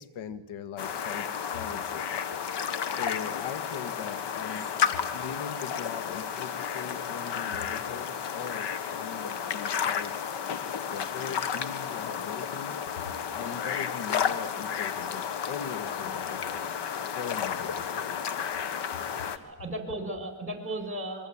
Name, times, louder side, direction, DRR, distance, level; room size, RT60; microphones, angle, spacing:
voice 1, 0.0-2.0 2.9-4.7 5.1-10.1 10.6-13.0 13.3-16.7 17.2-18.2, left 8 dB, 70° left, 12 dB, 2.1 m, -40 dB
sound 1, 0.8-19.4, left 7 dB, 55° left, 1.9 m, -32 dB
voice 2, 19.0-21.3, right 1 dB, 25° right, 6 dB, 7.0 m, -36 dB
26.5 x 23.0 x 8.9 m, 1.2 s
cardioid pair, 100°, 50 cm